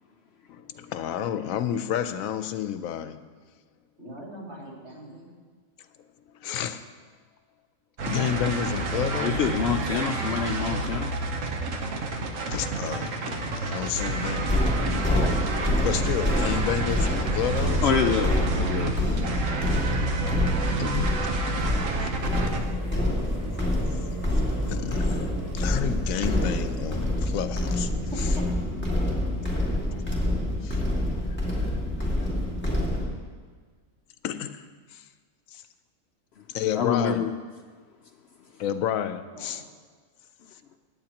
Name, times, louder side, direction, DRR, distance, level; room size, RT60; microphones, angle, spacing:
voice 1, 0.5-3.2 6.4-6.8 8.1-9.5 12.4-14.5 15.8-17.9 20.8-21.3 24.3-25.2 25.5-27.9 29.9-30.0 30.6-30.8 31.6-31.8 34.2-34.7 34.9-35.0 35.5-35.6 36.5-37.3 38.6-39.6, left 9 dB, 80° left, 11 dB, 1.0 m, -30 dB
voice 2, 4.0-5.3 27.9-28.4 39.2-39.6, equal, 55° right, -5 dB, 3.0 m, -42 dB
sound 1, 8.0-22.6, right 2 dB, 70° right, 1.4 m, -29 dB
voice 3, 9.2-11.1 17.8-19.0 36.7-37.3, left 6 dB, 60° left, 5 dB, 0.7 m, -26 dB
sound 2, 14.5-33.0, left 1 dB, 10° left, 2.1 m, -27 dB
sound 3, 22.2-27.2, equal, 30° right, 1.4 m, -43 dB
19.0 x 9.1 x 2.9 m, 1.5 s
omnidirectional pair, 1.4 m